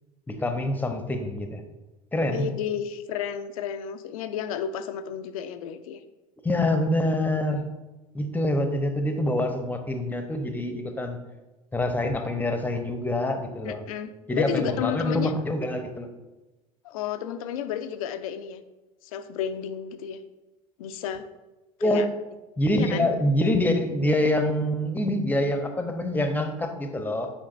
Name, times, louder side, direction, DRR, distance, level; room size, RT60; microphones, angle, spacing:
voice 1, 0.3-1.6 2.1-2.5 6.4-7.6 8.1-11.2 11.7-13.8 14.3-16.1 21.8-22.1 22.6-27.3, left 1 dB, 10° left, 6 dB, 0.9 m, -25 dB
voice 2, 2.3-6.0 13.6-15.3 16.8-18.6 19.0-20.2 20.8-21.2 21.8-22.1 22.7-23.1, left 9 dB, 65° left, 10 dB, 0.6 m, -32 dB
8.5 x 5.0 x 2.6 m, 1.1 s
figure-of-eight pair, 70°, 19 cm